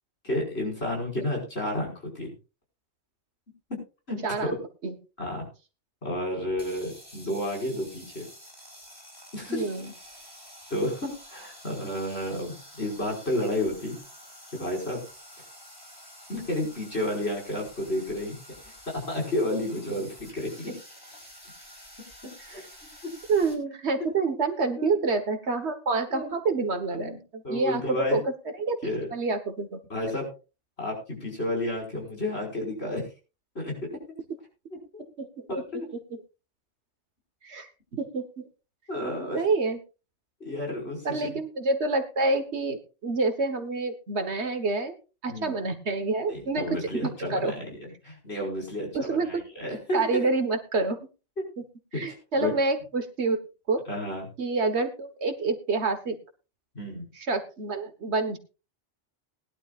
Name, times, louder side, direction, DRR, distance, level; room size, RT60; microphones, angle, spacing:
voice 1, 0.2-2.3 3.7-3.8 4.1-4.6 5.2-5.5 6.0-8.2 9.3-9.8 10.7-14.0 14.5-15.0 16.3-18.4 18.9-20.7 22.2-22.6 24.8-25.0 26.1-26.3 26.9-27.2 27.4-28.2 28.8-29.1 29.9-30.3 30.8-33.0 33.6-33.7 34.7-35.0 35.5-35.9 38.9-39.4 40.4-41.3 45.3-45.6 46.3-47.8 48.0-50.2 51.9-52.0 52.4-52.5 53.9-54.3 56.7-57.1, left 1 dB, 60° left, 0 dB, 5.7 m, -31 dB
voice 2, 4.2-4.5 4.8-4.9 9.5-9.9 23.3-28.2 28.6-28.8 29.1-29.8 35.2-35.6 37.4-38.5 39.3-39.8 41.0-45.0 45.2-47.5 48.9-49.3 49.9-51.0 51.9-53.4 53.7-53.8 54.4-56.2 57.1-58.4, right 3 dB, 65° right, 8 dB, 1.6 m, -27 dB
sound 1, 6.5-23.6, equal, 20° left, 5.6 m, -49 dB
20.0 x 11.5 x 2.4 m, 0.31 s
omnidirectional pair, 1.2 m